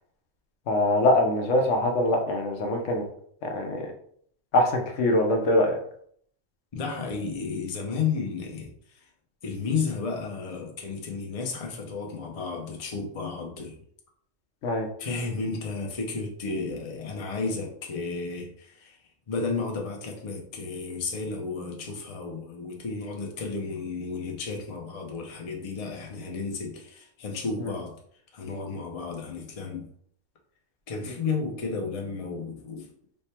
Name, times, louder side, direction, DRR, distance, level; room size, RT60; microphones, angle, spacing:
voice 1, 0.7-3.0 3.4-3.9 4.5-5.8 14.6-14.9, left 1 dB, 75° left, 2 dB, 1.0 m, -23 dB
voice 2, 6.7-8.7 8.9-9.1 9.4-13.8 15.0-19.0 19.3-27.9 28.3-29.9 30.9-32.9, left 4 dB, 40° left, 1 dB, 0.6 m, -32 dB
3.3 x 2.1 x 4.2 m, 0.65 s
omnidirectional pair, 1.3 m